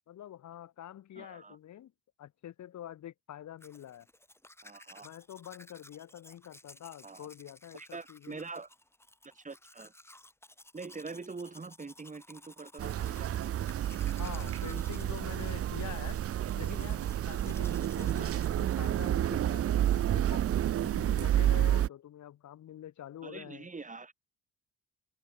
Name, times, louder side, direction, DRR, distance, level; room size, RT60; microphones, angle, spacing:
voice 1, 0.1-1.9 2.2-4.1 5.0-8.4 14.2-16.2 16.5-20.5 20.8-23.7, left 11 dB, 65° left, 2.2 m, -46 dB
voice 2, 1.2-1.6 4.6-5.1 7.0-7.3 7.7-8.7 9.2-9.9 10.7-13.5 18.2-18.5 23.2-24.1, right 4 dB, 25° right, 4.0 m, -44 dB
Domestic sounds home sounds, 3.6-18.5, left 1 dB, 10° left, 5.5 m, -56 dB
sound 1, 12.8-21.9, right 11 dB, 50° right, 0.6 m, -30 dB
cardioid pair, 90°, 30 cm